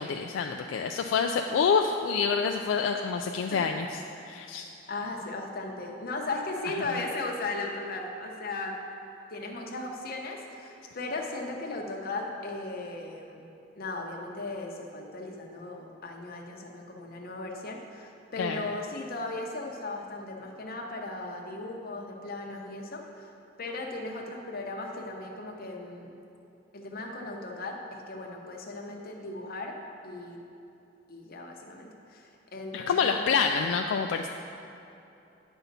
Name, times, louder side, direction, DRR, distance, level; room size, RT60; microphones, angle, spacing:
voice 1, 0.0-3.9 4.3-4.7 18.4-18.7 32.7-34.3, left 5 dB, 75° left, 4 dB, 0.3 m, -27 dB
voice 2, 4.9-8.8 9.3-13.5 13.8-23.3 23.6-26.1 26.7-29.8 30.0-30.4 31.1-33.5, left 2 dB, 50° left, 1 dB, 0.9 m, -37 dB
9.1 x 5.6 x 4.1 m, 2.8 s
head